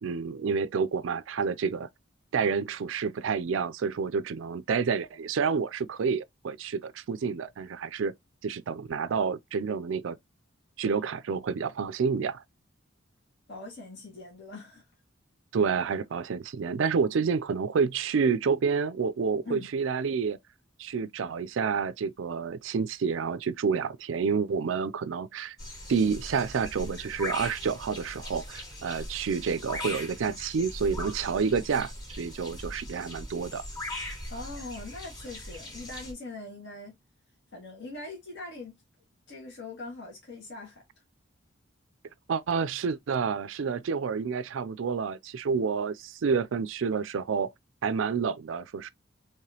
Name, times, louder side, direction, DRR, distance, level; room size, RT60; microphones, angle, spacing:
voice 1, 0.0-1.9 2.3-8.1 8.4-10.2 10.8-12.4 15.5-20.4 20.8-25.6 25.9-31.9 32.2-33.6 42.3-47.5 47.8-48.9, right 5 dB, 80° right, 0.4 m, -29 dB
voice 2, 13.5-14.9 19.4-19.7 34.3-37.0 37.5-38.8 39.3-40.8, left 2 dB, 65° left, 1.8 m, -42 dB
sound 1, 25.6-36.1, left 1 dB, 20° left, 2.6 m, -40 dB
4.9 x 3.1 x 2.8 m
head